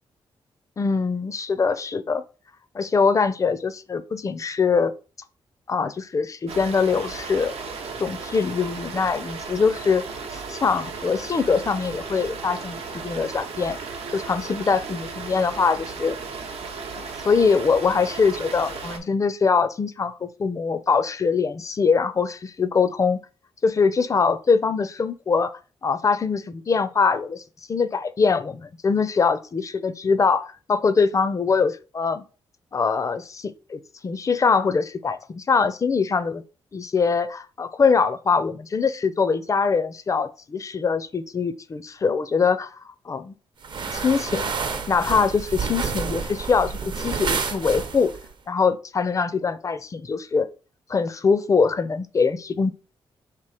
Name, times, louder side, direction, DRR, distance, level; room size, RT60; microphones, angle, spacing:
voice 1, 0.8-2.2 2.7-4.9 5.7-7.5 8.0-10.0 10.3-13.8 14.1-16.2 17.0-23.2 23.6-25.5 25.8-27.4 27.7-32.2 32.7-36.4 36.7-42.7 43.1-43.3 43.9-44.5 44.9-48.1 48.5-50.5 50.9-52.7, left 5 dB, 30° left, 0.4 m, -23 dB
sound 1, 6.5-19.0, right 4 dB, 85° right, 0.8 m, -35 dB
sound 2, 43.6-48.3, right 5 dB, 50° right, 0.6 m, -29 dB
3.5 x 2.9 x 4.8 m
cardioid pair, 110°, 10 cm